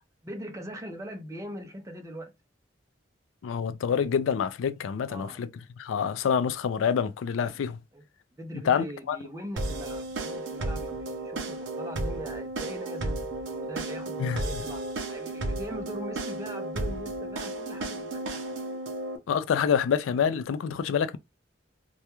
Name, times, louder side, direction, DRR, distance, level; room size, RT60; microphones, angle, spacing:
voice 1, 0.2-2.3 5.1-5.4 7.4-7.6 7.9-8.1 8.3-18.6, equal, 15° right, 0.5 m, -41 dB
voice 2, 3.4-5.5 5.8-7.8 8.6-9.2 14.2-14.6 19.3-21.2, left 7 dB, 90° left, 0.3 m, -27 dB
sound 1, 9.6-19.2, right 2 dB, 75° right, 0.6 m, -33 dB
2.3 x 2.1 x 2.9 m
head